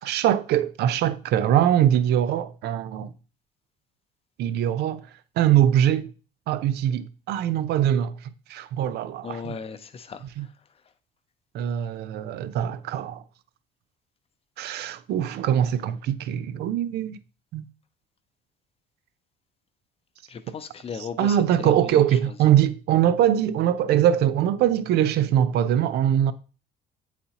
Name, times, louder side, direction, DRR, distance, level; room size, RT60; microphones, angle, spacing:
voice 1, 0.0-3.1 4.4-5.0 5.4-6.1 6.5-9.6 10.4-10.5 11.5-13.2 14.6-17.2 17.5-17.7 21.2-26.3, right 10 dB, 75° right, 0.5 m, -22 dB
voice 2, 9.2-10.5 20.3-22.4, left 6 dB, 35° left, 0.7 m, -37 dB
8.7 x 4.2 x 2.9 m
cardioid pair, 110°, 17 cm